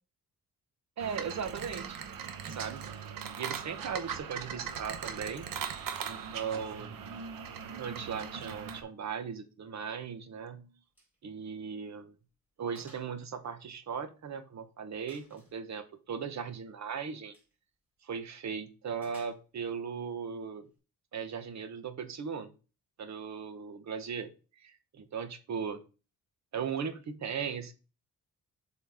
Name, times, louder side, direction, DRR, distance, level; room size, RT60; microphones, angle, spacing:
voice 1, 1.0-2.0 2.5-2.8 3.4-5.5 6.0-7.0 7.8-10.7 11.2-12.2 12.6-17.4 18.0-20.7 21.1-22.5 23.0-24.3 24.6-25.8 26.5-27.7, right 6 dB, 55° right, 10 dB, 0.9 m, -38 dB
sound 1, 1.0-8.8, right 7 dB, 85° right, 1.0 m, -40 dB
Gunshot gunfire, 10.9-11.2 11.5-11.6 12.1-12.2 12.7-13.1 13.4-14.4 15.1-15.6 17.2-17.5 19.0-19.7, equal, 5° right, 4.0 m, -58 dB
7.5 x 4.2 x 3.4 m, 0.33 s
wide cardioid pair, 150°, 33 cm